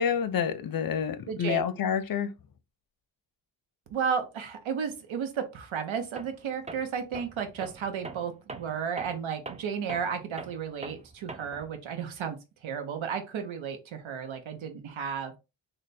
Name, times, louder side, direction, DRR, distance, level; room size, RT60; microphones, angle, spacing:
voice 1, 0.0-2.3, left 7 dB, 50° left, 0.5 m, -28 dB
voice 2, 1.3-1.6 3.9-12.4 12.6-15.4, right 7 dB, 80° right, 0.8 m, -33 dB
Tools, 6.2-6.4 6.7-11.7, right 3 dB, 15° right, 0.3 m, -43 dB
3.2 x 2.2 x 4.0 m
wide cardioid pair, 100°, 47 cm